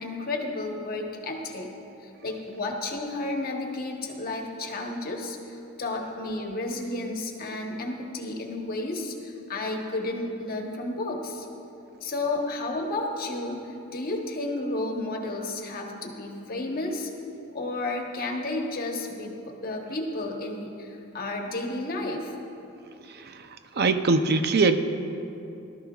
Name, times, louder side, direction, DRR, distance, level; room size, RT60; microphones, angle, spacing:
voice 1, 0.0-1.7 2.0-11.5 12.0-17.1 17.5-22.3, left 2 dB, 45° left, 1 dB, 1.1 m, -32 dB
voice 2, 23.1-24.8, right 3 dB, 50° right, 8 dB, 0.6 m, -23 dB
18.0 x 12.5 x 2.4 m, 2.8 s
head